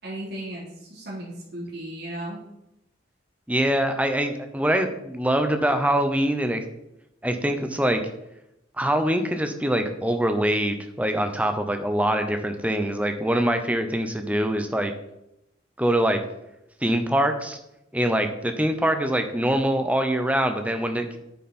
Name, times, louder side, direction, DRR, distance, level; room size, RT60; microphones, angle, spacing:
voice 1, 0.0-2.4, right 1 dB, 55° right, -5 dB, 3.6 m, -35 dB
voice 2, 3.5-6.6 7.2-8.0 8.8-14.9 15.8-16.2 16.8-17.6 17.9-21.2, right 1 dB, 5° right, 7 dB, 0.8 m, -24 dB
8.8 x 7.0 x 4.3 m, 0.86 s
head